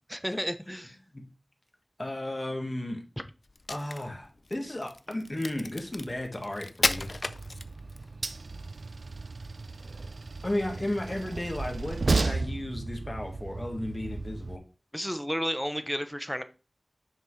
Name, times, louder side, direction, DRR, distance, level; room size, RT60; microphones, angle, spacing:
voice 1, 0.1-1.0 14.9-16.4, equal, ahead, 9 dB, 0.8 m, -32 dB
voice 2, 2.0-3.0 3.7-7.3 10.4-14.6, left 1 dB, 30° left, 3 dB, 1.5 m, -34 dB
Crack, 3.5-8.1, left 2 dB, 60° left, 0.4 m, -33 dB
Train, 6.8-14.6, right 3 dB, 85° right, 0.4 m, -34 dB
7.2 x 5.9 x 3.2 m, 0.33 s
wide cardioid pair, 60°, 0 cm